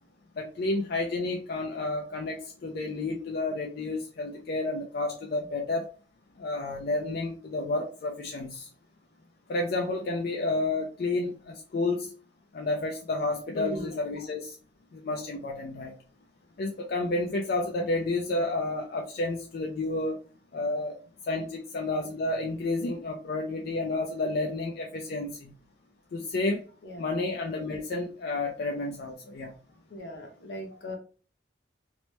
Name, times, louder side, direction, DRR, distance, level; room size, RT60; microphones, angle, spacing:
voice 1, 0.4-5.9 6.4-8.7 9.5-12.1 12.5-14.5 14.9-15.9 16.6-20.2 20.5-21.0 21.3-25.5 26.1-26.6 27.0-29.5, left 2 dB, 60° left, 2 dB, 0.4 m, -30 dB
voice 2, 13.5-13.9 26.8-27.1 29.9-31.0, equal, 80° left, 2 dB, 0.9 m, -37 dB
2.9 x 2.0 x 3.1 m, 0.39 s
head